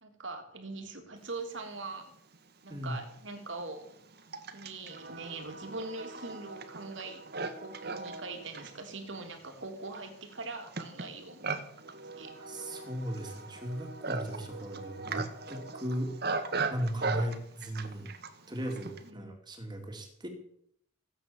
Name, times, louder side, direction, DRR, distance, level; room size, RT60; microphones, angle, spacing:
voice 1, 0.0-2.1 2.6-4.0 4.5-11.5 11.9-12.4 16.9-17.3 19.0-19.3, right 3 dB, 75° right, 4 dB, 3.2 m, -42 dB
Livestock farm animals working animals, 2.3-2.4 3.2-19.1, right 4 dB, 55° right, 1.7 m, -39 dB
voice 2, 2.7-3.0 12.4-18.1 18.5-20.3, equal, 25° right, 3 dB, 3.0 m, -37 dB
17.5 x 9.3 x 7.4 m, 0.69 s
head